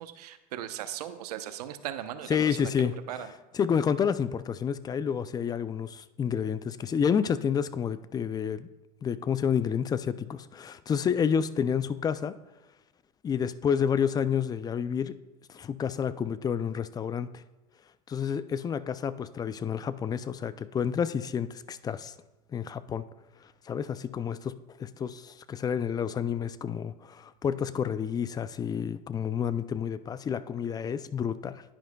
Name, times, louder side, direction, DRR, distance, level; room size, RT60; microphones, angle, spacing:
voice 1, 0.0-3.3, right 11 dB, 85° right, 10 dB, 0.8 m, -38 dB
voice 2, 2.3-2.9 3.5-8.7 9.0-12.4 13.2-15.2 15.5-17.3 18.1-22.1 22.5-23.0 23.7-24.5 24.8-31.6, left 7 dB, 20° left, 15 dB, 0.3 m, -29 dB
10.5 x 10.0 x 2.3 m, 1.1 s
supercardioid pair, 110°, 20 cm